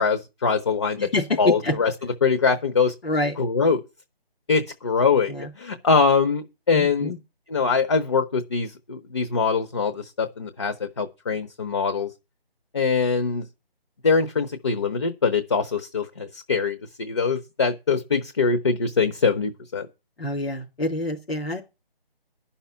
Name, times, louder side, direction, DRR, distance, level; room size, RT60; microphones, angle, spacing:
voice 1, 0.0-1.1 1.4-1.9 2.2-2.9 3.4-3.8 4.5-7.1 7.5-12.1 12.7-13.4 14.0-19.9, left 5 dB, 30° left, 0.8 m, -23 dB
voice 2, 1.0-1.7 3.0-3.3 5.3-5.5 6.7-7.2 20.2-21.6, left 2 dB, 80° left, 3.7 m, -26 dB
11.0 x 5.7 x 8.3 m
figure-of-eight pair, 165°, 30 cm